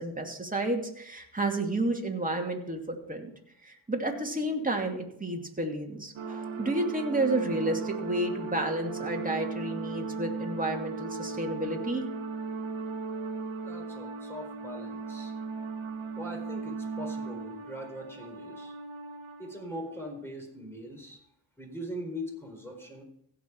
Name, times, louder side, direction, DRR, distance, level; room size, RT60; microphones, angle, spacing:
voice 1, 0.0-3.3 3.6-12.1, right 1 dB, 15° right, 1 dB, 2.6 m, -31 dB
sound 1, 6.2-19.8, right 4 dB, 75° right, 1.6 m, -37 dB
voice 2, 13.6-15.3 16.2-18.7 19.4-21.2 21.6-23.0, equal, 5° left, 1 dB, 4.3 m, -41 dB
16.0 x 6.1 x 4.6 m, 0.70 s
cardioid pair, 60°, 48 cm